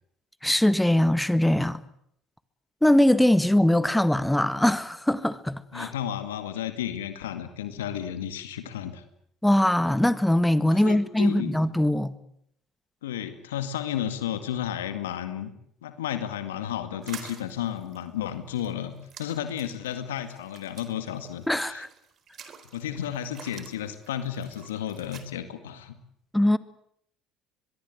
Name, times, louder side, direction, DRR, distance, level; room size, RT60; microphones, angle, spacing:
voice 1, 0.4-1.8 2.8-5.9 9.4-12.1 21.5-21.9 26.3-26.6, left 1 dB, 5° left, 1.7 m, -22 dB
voice 2, 5.7-9.0 10.7-11.5 13.0-15.5 15.8-21.8 22.7-26.0, left 10 dB, 85° left, 2.1 m, -33 dB
sound 1, 17.0-25.2, right 7 dB, 50° right, 4.1 m, -48 dB
23.5 x 22.5 x 8.0 m
hypercardioid pair, 65°, 0 cm